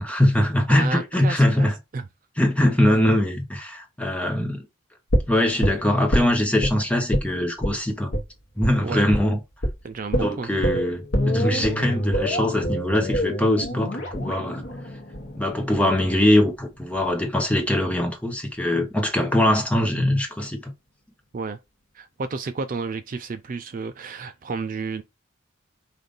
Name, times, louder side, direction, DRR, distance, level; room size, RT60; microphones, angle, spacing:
voice 1, 0.0-1.7 2.4-4.6 5.3-8.1 8.6-9.4 10.2-11.0 11.3-14.6 15.4-20.7, left 1 dB, 5° left, 0.8 m, -22 dB
voice 2, 0.7-2.0 2.9-3.0 8.8-9.1 9.8-10.5 21.3-21.6 21.9-25.0, right 4 dB, 40° right, 0.3 m, -32 dB
sound 1, 5.1-6.7 7.1-7.3 7.6-7.8 8.1-8.3 8.6-8.8 9.1-9.3 9.6-9.8 10.1-16.1 16.4-16.5, equal, 60° left, 1.0 m, -26 dB
5.1 x 2.4 x 3.9 m
head